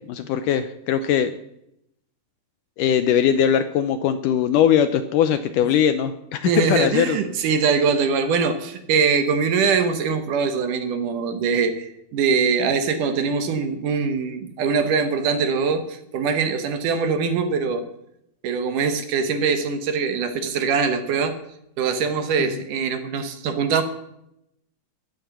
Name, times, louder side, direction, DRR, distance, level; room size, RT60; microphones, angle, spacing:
voice 1, 0.1-1.4 2.8-7.2 22.5-22.6, left 9 dB, 75° left, 10 dB, 2.0 m, -20 dB
voice 2, 6.5-17.8 18.4-21.4 21.8-23.8, right 5 dB, 65° right, 8 dB, 2.5 m, -22 dB
14.5 x 12.0 x 6.1 m, 0.79 s
omnidirectional pair, 4.3 m